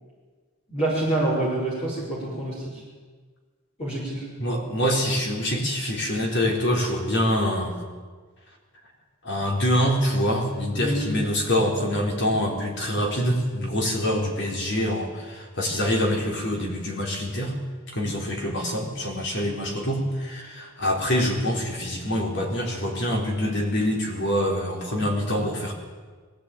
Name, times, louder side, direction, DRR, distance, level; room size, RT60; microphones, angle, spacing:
voice 1, 0.7-2.8 3.8-4.2 10.7-11.1, right 1 dB, 30° left, -6 dB, 5.5 m, -26 dB
voice 2, 4.4-7.7 9.2-17.5 17.9-25.7, equal, 55° left, 1 dB, 4.1 m, -25 dB
21.0 x 15.5 x 9.2 m, 1.4 s
head